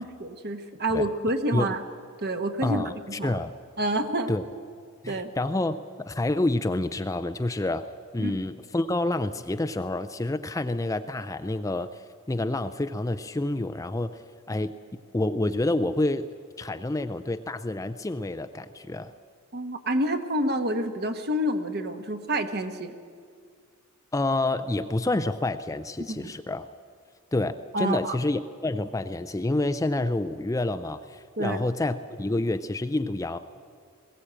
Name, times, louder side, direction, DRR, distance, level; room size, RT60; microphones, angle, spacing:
voice 1, 0.0-1.8 2.2-3.4 3.8-4.6 5.1-5.3 8.2-8.4 19.5-22.9 26.1-26.3 27.7-28.1 31.4-31.6, right 1 dB, 45° right, 7 dB, 1.2 m, -28 dB
voice 2, 2.6-2.9 3.2-3.6 4.3-4.4 5.0-7.9 8.1-14.2 14.5-14.7 15.1-16.3 16.6-19.1 24.1-26.7 27.3-33.4, left 2 dB, 15° left, 10 dB, 0.4 m, -28 dB
20.5 x 16.5 x 8.7 m, 2.1 s
head